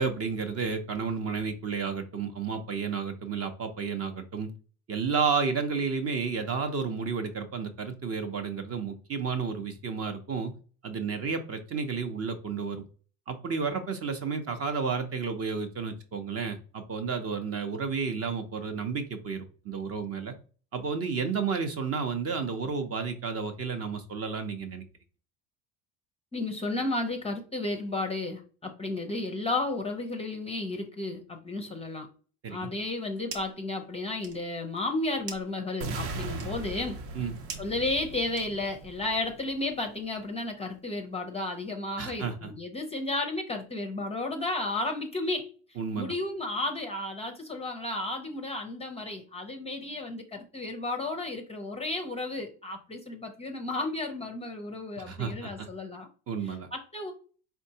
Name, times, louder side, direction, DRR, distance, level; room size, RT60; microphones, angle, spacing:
voice 1, 0.0-4.5 4.9-10.5 10.8-12.8 13.3-20.3 20.7-24.8 32.4-32.7 37.1-37.3 42.0-42.5 45.8-46.1 55.0-55.7 56.3-56.7, right 5 dB, 35° right, 6 dB, 0.6 m, -31 dB
voice 2, 26.3-32.1 32.5-37.0 37.6-56.1 56.4-57.1, left 2 dB, 15° left, 4 dB, 0.5 m, -33 dB
sound 1, 32.8-33.7 34.0-38.9, right 5 dB, 90° right, 1.0 m, -46 dB
sound 2, 35.8-39.8, right 2 dB, 65° right, 0.9 m, -38 dB
4.4 x 3.4 x 2.8 m, 0.39 s
cardioid pair, 125°, 43 cm